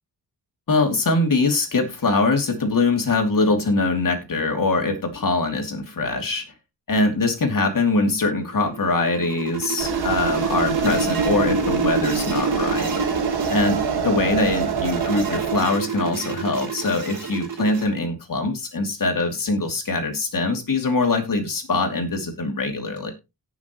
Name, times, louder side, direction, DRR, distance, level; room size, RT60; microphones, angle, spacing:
voice 1, 0.7-6.4 6.9-13.0 13.5-13.8 14.0-23.1, left 3 dB, 50° left, 4 dB, 2.8 m, -22 dB
sound 1, 8.4-17.9, right 7 dB, 50° right, 3.4 m, -30 dB
sound 2, 9.8-15.6, right 5 dB, 65° right, 1.6 m, -25 dB
18.0 x 6.2 x 3.1 m, 0.26 s
wide cardioid pair, 95°, 42 cm